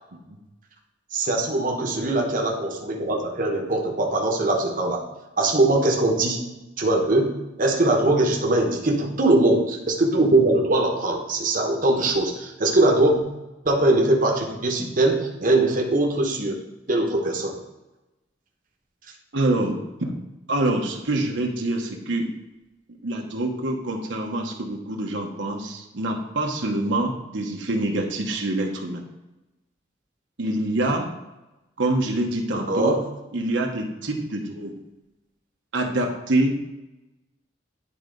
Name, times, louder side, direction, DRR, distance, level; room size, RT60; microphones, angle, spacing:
voice 1, 1.1-5.0 5.4-6.4 6.8-13.2 13.6-16.6 16.9-17.6 32.5-33.0, right 2 dB, 45° right, 1 dB, 1.0 m, -21 dB
voice 2, 19.3-22.3 23.0-29.0 30.4-31.1 31.8-32.9 33.3-34.7 35.7-36.6, right 1 dB, 80° right, 1 dB, 1.0 m, -26 dB
10.0 x 3.9 x 3.8 m, 1.0 s
head